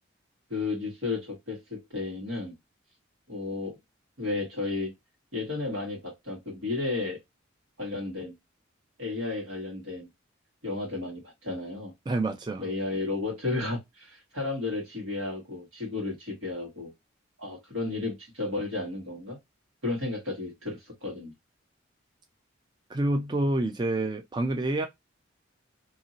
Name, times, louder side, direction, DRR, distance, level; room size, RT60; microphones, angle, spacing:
voice 1, 0.5-2.5 3.3-3.8 4.2-4.9 5.3-7.2 7.8-8.3 9.0-10.1 10.6-11.9 12.6-16.9 17.4-19.4 19.8-21.3, left 3 dB, 85° right, 1.7 m, -33 dB
voice 2, 12.1-12.7 22.9-24.9, right 2 dB, 20° right, 0.3 m, -27 dB
2.8 x 2.7 x 2.7 m
head